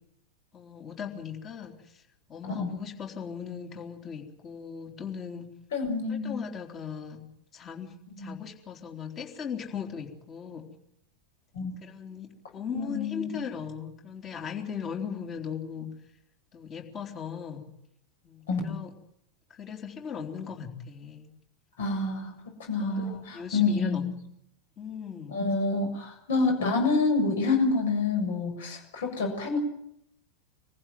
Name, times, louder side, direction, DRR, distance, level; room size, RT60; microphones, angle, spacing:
voice 1, 0.5-2.0 2.3-5.5 6.1-7.3 7.5-10.6 11.8-15.9 16.5-17.7 18.2-18.9 19.6-21.3 22.8-23.0 23.3-24.0 24.8-25.4, left 7 dB, 25° left, 3 dB, 3.8 m, -38 dB
voice 2, 5.7-6.5 8.2-8.4 11.5-11.7 12.7-13.5 18.5-18.8 21.8-24.1 25.3-29.6, left 3 dB, 60° left, 4 dB, 7.3 m, -28 dB
25.5 x 15.5 x 9.4 m, 0.75 s
figure-of-eight pair, 90°, 0 cm